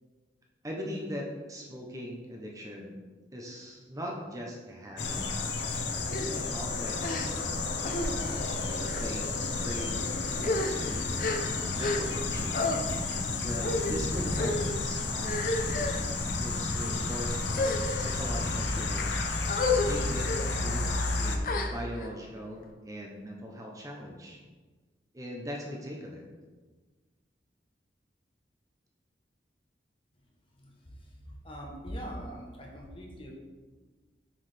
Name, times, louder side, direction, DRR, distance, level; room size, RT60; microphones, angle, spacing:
voice 1, 0.6-3.0 3.3-5.2 6.1-7.4 8.1-10.1 10.4-12.7 13.4-19.5 19.8-20.3 20.6-24.4 25.1-26.2, equal, 20° right, -1 dB, 0.7 m, -40 dB
sound 1, 5.0-21.4, left 3 dB, 85° left, 0.7 m, -31 dB
sound 2, 6.1-6.3 7.0-7.5 7.8-8.1 8.8-9.1 9.8-10.0 10.3-12.3 12.5-12.8 13.6-13.9 14.3-14.7 15.2-16.1 16.7-17.0 17.5-18.2 18.8-19.0 19.5-19.9 20.2-20.4 21.4-22.1, left 3 dB, 50° left, 0.6 m, -31 dB
voice 2, 30.5-33.3, equal, 30° left, -1 dB, 1.0 m, -42 dB
7.3 x 4.7 x 3.4 m, 1.3 s
head